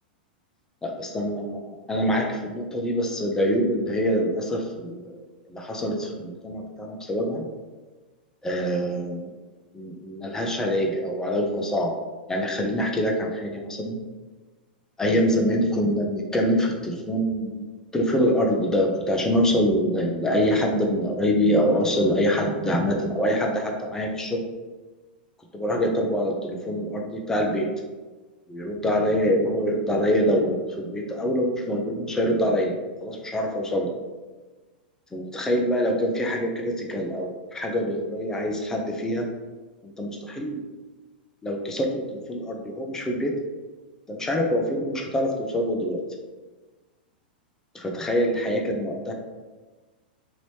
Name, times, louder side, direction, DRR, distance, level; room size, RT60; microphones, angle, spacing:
voice 1, 0.8-7.5 8.4-9.3 9.7-11.9 12.3-14.0 15.0-24.4 25.5-27.7 28.5-32.7 33.0-33.9 35.1-39.3 39.8-40.6 41.4-43.3 44.1-46.0 47.7-49.1, equal, 10° left, 1 dB, 0.6 m, -25 dB
3.0 x 2.6 x 3.2 m, 1.3 s
hypercardioid pair, 105°, 5 cm